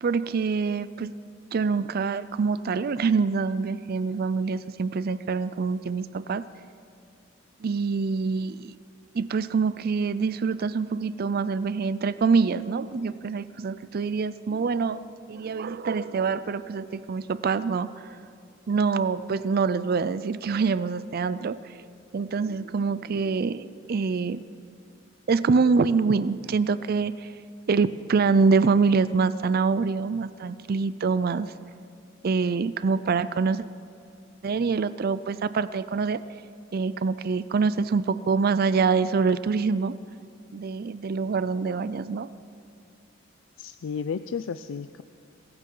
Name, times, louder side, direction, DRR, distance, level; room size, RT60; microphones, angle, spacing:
voice 1, 0.0-1.1 1.5-6.5 7.6-8.8 9.1-18.1 18.7-21.6 22.1-24.4 25.3-27.3 27.7-31.5 32.2-33.6 34.4-36.2 36.7-40.0 40.5-42.3, right 4 dB, 50° right, 16 dB, 0.4 m, -25 dB
voice 2, 43.6-45.0, left 6 dB, 80° left, 12 dB, 0.4 m, -33 dB
25.5 x 14.5 x 3.8 m, 2.4 s
head